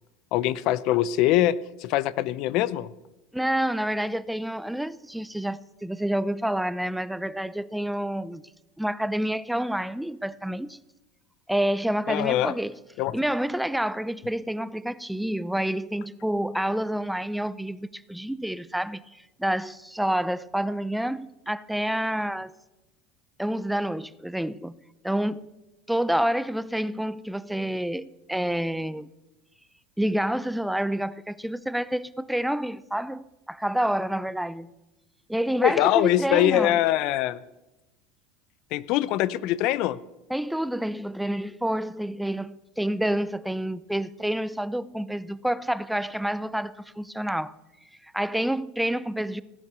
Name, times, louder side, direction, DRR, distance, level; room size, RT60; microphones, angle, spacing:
voice 1, 0.3-1.5 1.8-2.9 12.1-12.5 13.0-13.1 35.6-37.4 38.7-40.0, left 14 dB, 60° left, 0.6 m, -23 dB
voice 2, 3.3-8.4 8.8-10.8 11.5-12.8 13.1-19.0 19.4-22.5 23.4-24.7 25.0-25.6 25.9-29.1 30.0-34.7 35.3-36.8 40.3-47.5 48.0-49.4, right 1 dB, 5° right, 0.5 m, -28 dB
17.0 x 9.7 x 6.7 m
hypercardioid pair, 95°, 0 cm